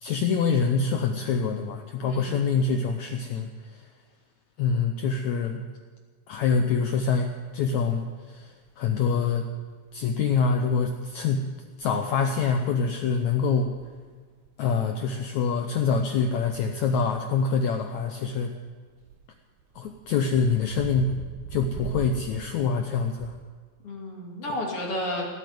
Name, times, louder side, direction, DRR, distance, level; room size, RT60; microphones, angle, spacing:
voice 1, 0.0-3.8 4.6-5.6 6.3-9.5 9.9-11.4 11.8-13.7 14.6-18.5 19.7-21.2 21.5-23.3, left 5 dB, 75° left, 4 dB, 1.7 m, -25 dB
voice 2, 2.0-2.4 23.8-25.3, left 1 dB, 40° left, -1 dB, 2.8 m, -32 dB
sound 1, 7.1-7.2 7.3-7.9 8.4-8.7 9.1-9.2 9.7-10.2 10.5-11.3 11.7-12.4 12.7-15.0 15.6-23.4, right 7 dB, 85° right, 1.7 m, -42 dB
18.0 x 8.5 x 9.4 m, 1.5 s
omnidirectional pair, 4.3 m